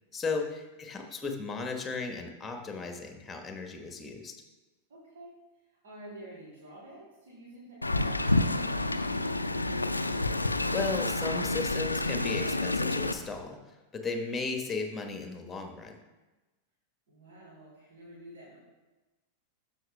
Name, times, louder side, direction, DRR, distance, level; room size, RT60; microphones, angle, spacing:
voice 1, 0.1-4.4 10.4-16.0, left 4 dB, 15° left, 4 dB, 1.2 m, -36 dB
voice 2, 4.9-5.4 5.7-9.7 17.1-18.6, right 1 dB, 60° right, -6 dB, 3.1 m, -50 dB
Wind, 7.8-13.1, left 2 dB, 85° left, 0.4 m, -29 dB
sound 1, 10.8-13.4, left 1 dB, 45° right, 2.5 m, -49 dB
12.5 x 7.5 x 2.3 m, 1.1 s
figure-of-eight pair, 90°, 0 cm